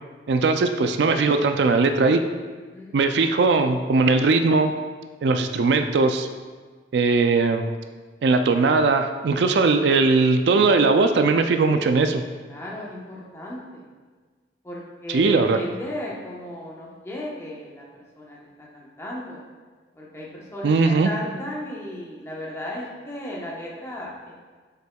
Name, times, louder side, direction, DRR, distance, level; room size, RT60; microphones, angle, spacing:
voice 1, 0.3-2.2 2.9-4.7 5.2-6.3 6.9-7.7 8.2-12.2 15.1-15.6 20.6-21.1, right 3 dB, 75° right, 7 dB, 0.4 m, -19 dB
voice 2, 12.5-13.8 14.6-17.8 18.2-19.4 19.9-24.4, left 1 dB, 15° left, -5 dB, 1.0 m, -35 dB
7.6 x 5.6 x 2.3 m, 1.4 s
head